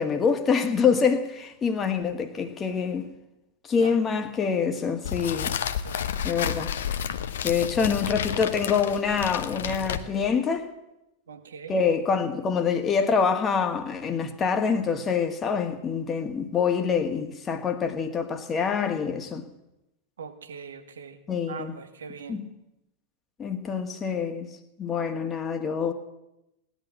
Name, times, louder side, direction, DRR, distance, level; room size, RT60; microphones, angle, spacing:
voice 1, 0.0-3.1 3.6-5.6 6.2-6.7 7.4-10.7 11.7-19.5 21.3-21.7 22.3-22.5 23.4-24.5 24.8-25.9, left 6 dB, 20° left, 1.7 m, -26 dB
sound 1, 5.0-10.4, left 9 dB, 60° left, 0.9 m, -31 dB
voice 2, 5.8-6.2 11.3-11.8 20.2-21.2 21.5-22.4, right 6 dB, 65° right, 1.6 m, -41 dB
18.0 x 11.0 x 7.4 m
figure-of-eight pair, 90°, 0 cm